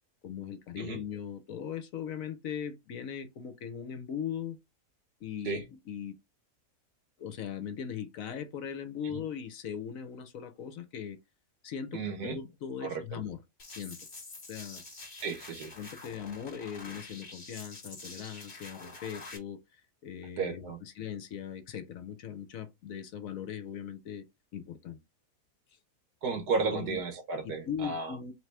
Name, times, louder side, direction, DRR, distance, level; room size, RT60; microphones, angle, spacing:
voice 1, 0.2-4.6 5.2-6.1 7.2-11.2 11.6-13.4 13.7-14.0 14.5-14.8 15.8-24.2 24.5-25.0 26.7-27.0 27.4-28.3, left 8 dB, 65° left, 1.0 m, -39 dB
voice 2, 11.9-12.4 12.8-13.2 15.2-15.7 20.4-20.8 26.2-28.2, right 4 dB, 75° right, 1.8 m, -33 dB
sound 1, 13.6-19.4, left 3 dB, 35° left, 1.9 m, -47 dB
4.0 x 3.0 x 3.3 m
omnidirectional pair, 1.7 m